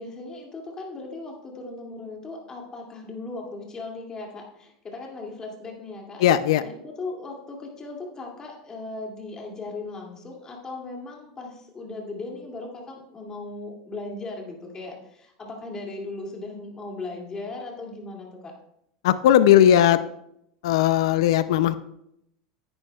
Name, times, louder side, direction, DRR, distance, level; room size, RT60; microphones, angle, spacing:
voice 1, 0.0-6.2 6.6-18.5, left 3 dB, 25° left, 0 dB, 2.4 m, -37 dB
voice 2, 6.2-6.6 19.0-20.0 20.6-21.7, left 11 dB, 80° left, 14 dB, 0.4 m, -18 dB
9.8 x 9.8 x 2.3 m, 0.77 s
supercardioid pair, 110°, 3 cm